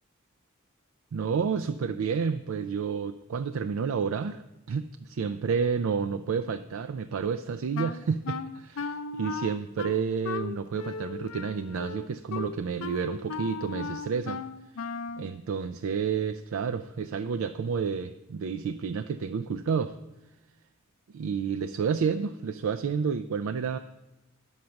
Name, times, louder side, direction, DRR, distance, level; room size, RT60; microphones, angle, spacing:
voice 1, 1.1-4.9 5.2-14.4 15.2-19.9 21.1-23.8, right 6 dB, 85° right, 10 dB, 0.4 m, -30 dB
Wind instrument woodwind instrument, 7.7-15.3, left 5 dB, 80° left, 0.5 m, -36 dB
10.5 x 6.4 x 5.8 m, 0.99 s
head